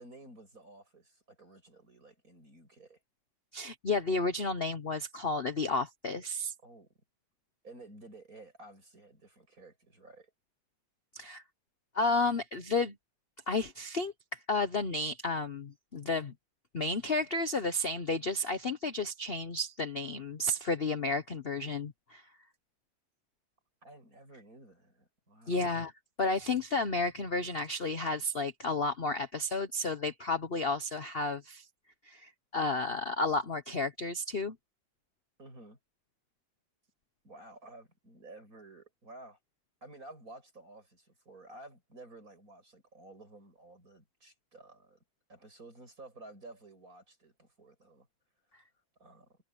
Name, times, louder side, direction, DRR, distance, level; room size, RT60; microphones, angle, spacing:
voice 1, 0.0-3.0 6.6-6.9 7.6-10.3 23.8-25.7 35.4-35.8 37.2-39.4 39.8-45.0 45.3-48.1 49.0-49.4, right 2 dB, 45° right, 8.1 m, -53 dB
voice 2, 3.5-6.5 11.1-11.4 11.9-12.9 13.5-16.3 16.7-22.2 25.5-25.9 26.2-31.7 32.0-34.6, left 3 dB, 40° left, 1.0 m, -32 dB
omnidirectional pair, 2.1 m